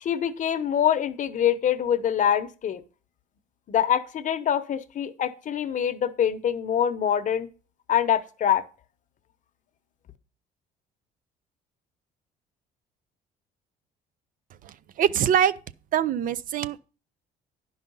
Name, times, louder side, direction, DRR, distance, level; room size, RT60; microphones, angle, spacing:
voice 1, 0.0-2.8 3.7-7.5 7.9-8.6, left 9 dB, 50° left, 0.8 m, -24 dB
voice 2, 14.6-15.5 15.9-16.8, right 9 dB, 55° right, 0.5 m, -24 dB
10.0 x 5.6 x 5.4 m
cardioid pair, 110°, 17 cm